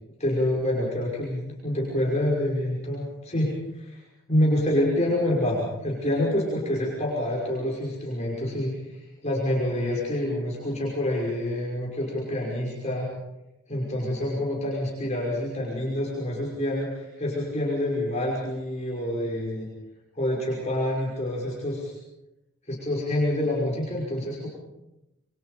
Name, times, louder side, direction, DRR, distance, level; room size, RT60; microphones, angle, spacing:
voice 1, 0.2-4.0 4.3-13.1 13.7-19.7 20.1-22.0 22.7-24.5, left 1 dB, 30° left, -4 dB, 5.8 m, -27 dB
28.0 x 24.5 x 5.2 m, 0.95 s
head